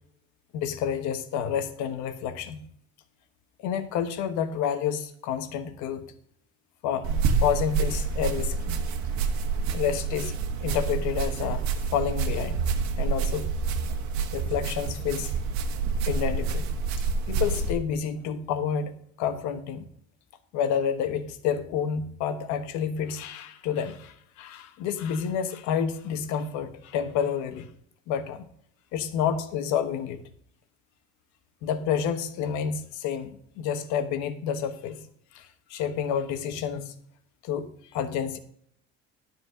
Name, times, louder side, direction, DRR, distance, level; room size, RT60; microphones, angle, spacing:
voice 1, 0.5-2.6 3.6-6.1 6.8-8.8 9.7-10.4 10.6-12.7 13.0-13.5 14.3-15.3 16.1-16.7 17.3-19.9 20.5-27.7 28.1-28.5 28.9-30.2 31.6-35.0 35.3-36.9 37.4-38.4, left 8 dB, 75° left, 9 dB, 1.3 m, -29 dB
sound 1, 7.0-17.7, right 5 dB, 70° right, 1.4 m, -28 dB
12.5 x 4.5 x 6.5 m, 0.68 s
cardioid pair, 120°, 29 cm